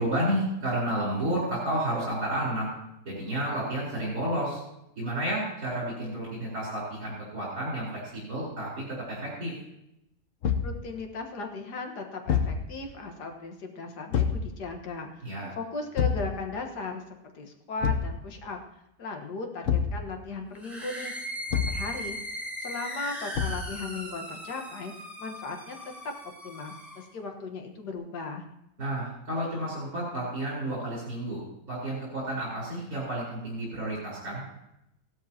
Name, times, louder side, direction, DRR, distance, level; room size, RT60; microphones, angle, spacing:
voice 1, 0.0-2.7 3.1-4.6 5.0-9.5 15.2-15.5 28.8-31.4 31.7-34.5, right 1 dB, 65° right, -6 dB, 4.6 m, -31 dB
Thump thud, 10.4-10.8 12.3-12.6 14.1-14.5 16.0-16.3 17.8-18.2 19.7-20.0 21.5-21.9 23.4-23.7, left 7 dB, 55° left, 1.2 m, -26 dB
voice 2, 10.6-17.0 17.3-18.6 19.0-21.1 21.5-25.8 26.0-26.1 26.4-28.4, left 3 dB, 90° left, 3 dB, 2.0 m, -37 dB
sound 1, 20.5-27.1, equal, ahead, 3.6 m, -38 dB
16.5 x 12.5 x 2.8 m, 0.85 s
omnidirectional pair, 1.7 m